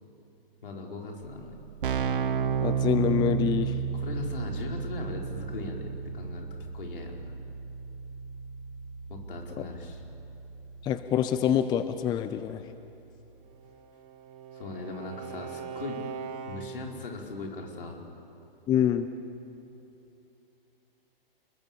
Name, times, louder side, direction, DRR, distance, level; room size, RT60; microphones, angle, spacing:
voice 1, 0.6-1.6 3.9-6.5 6.7-7.3 9.1-10.0 14.5-16.0 16.5-18.0, left 3 dB, 65° left, 1 dB, 4.7 m, -39 dB
Keyboard (musical), 1.2-1.3 1.5-12.1, right 7 dB, 60° right, 1.3 m, -33 dB
voice 2, 2.6-3.7 10.8-12.6 18.7-19.1, left 10 dB, 15° left, 11 dB, 0.6 m, -26 dB
Bowed string instrument, 13.4-17.0, right 6 dB, 35° right, 2.3 m, -41 dB
29.5 x 21.5 x 7.1 m, 2.9 s
figure-of-eight pair, 120°, 29 cm